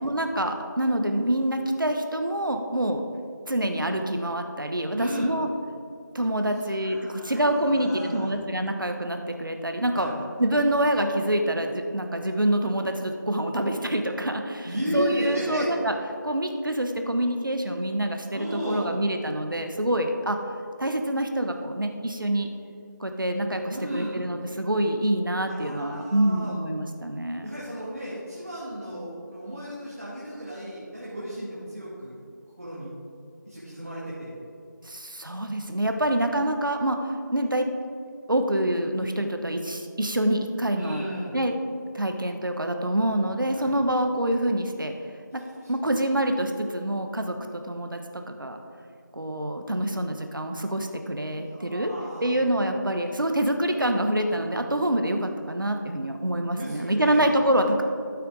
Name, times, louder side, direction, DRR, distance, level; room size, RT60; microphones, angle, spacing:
voice 1, 0.0-3.0 3.5-5.5 6.1-10.1 10.4-15.9 16.2-20.4 20.8-22.5 23.0-27.5 34.8-37.7 38.3-41.0 41.3-41.5 41.9-44.9 45.3-45.4 45.7-48.6 49.1-51.9 52.2-57.8, right 1 dB, 85° right, 5 dB, 1.0 m, -26 dB
voice 2, 4.9-5.3 6.7-8.3 9.9-10.1 14.6-15.7 18.3-19.0 23.7-24.3 25.4-26.5 27.4-32.1 32.6-32.9 33.5-34.3 40.7-41.3 43.6-43.7 45.6-45.7 51.3-52.3 56.6-57.3, equal, 45° right, -8 dB, 2.0 m, -34 dB
13.5 x 5.8 x 3.8 m, 2.5 s
figure-of-eight pair, 175°, 11 cm